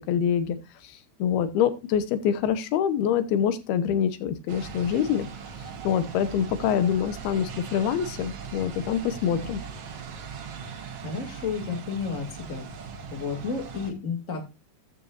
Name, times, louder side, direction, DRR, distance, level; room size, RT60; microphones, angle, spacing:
voice 1, 0.1-0.6 0.8-5.3 5.8-9.6, left 8 dB, 70° left, 11 dB, 2.9 m, -25 dB
sound 1, 4.5-13.9, right 6 dB, 60° right, 1.7 m, -40 dB
voice 2, 11.0-12.7 13.1-14.5, left 5 dB, 25° left, 3 dB, 2.3 m, -32 dB
14.0 x 9.0 x 2.6 m, 0.26 s
omnidirectional pair, 4.8 m